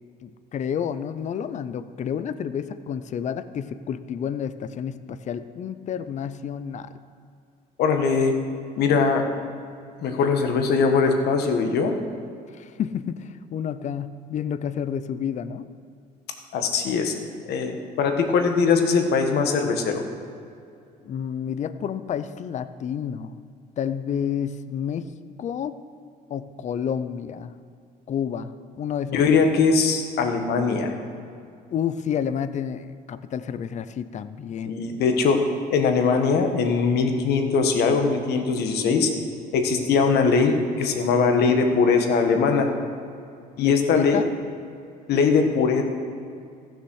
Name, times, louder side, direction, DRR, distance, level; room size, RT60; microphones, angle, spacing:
voice 1, 0.2-7.0 12.5-15.7 21.0-23.3 23.8-25.1 25.4-25.8 26.3-27.5 28.1-29.2 31.7-34.8 43.6-44.3, left 8 dB, 45° left, 13 dB, 0.6 m, -30 dB
voice 2, 7.8-8.3 8.8-9.2 10.0-11.9 16.5-17.1 17.5-20.0 29.1-30.9 34.6-39.1 39.5-42.7 43.6-44.2 45.1-45.8, left 5 dB, 75° left, 5 dB, 1.5 m, -21 dB
14.5 x 6.7 x 6.3 m, 2.5 s
cardioid pair, 110°, 17 cm